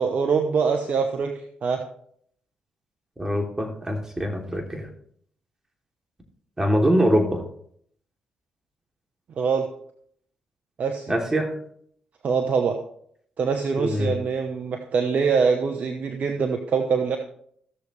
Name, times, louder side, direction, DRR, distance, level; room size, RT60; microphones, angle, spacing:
voice 1, 0.0-1.8 9.4-9.7 10.8-11.1 12.2-12.8 13.4-17.2, right 5 dB, 60° right, 6 dB, 1.0 m, -24 dB
voice 2, 3.2-4.9 6.6-7.4 11.1-11.5 13.8-14.1, equal, 20° right, 2 dB, 3.0 m, -23 dB
15.5 x 6.8 x 3.3 m, 0.64 s
hypercardioid pair, 45°, 3 cm